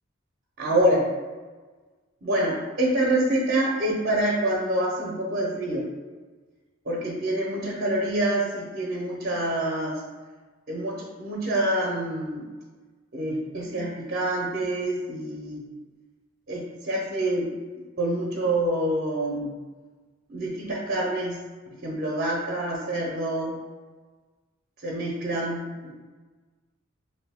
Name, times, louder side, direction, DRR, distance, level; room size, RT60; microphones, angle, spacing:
voice 1, 0.6-1.1 2.2-5.9 6.8-10.0 10.7-12.4 13.1-15.6 16.5-17.5 18.0-19.5 20.3-21.4 21.8-23.6 24.8-25.9, right 1 dB, 50° right, -3 dB, 0.6 m, -26 dB
3.1 x 2.6 x 3.4 m, 1.3 s
head